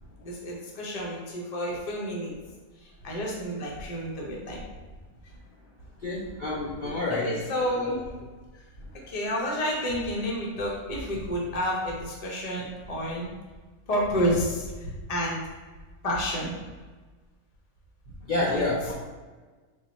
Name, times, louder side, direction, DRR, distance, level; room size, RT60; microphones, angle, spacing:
voice 1, 0.2-2.3 3.0-4.6 6.8-6.9 7.2-8.0 9.1-13.3 13.9-14.6 15.1-15.4 16.0-16.6 18.4-18.6, equal, 35° left, -3 dB, 0.7 m, -29 dB
voice 2, 6.0-7.4 18.3-18.9, left 2 dB, 70° left, -5 dB, 0.4 m, -28 dB
3.9 x 2.3 x 4.1 m, 1.4 s
omnidirectional pair, 1.5 m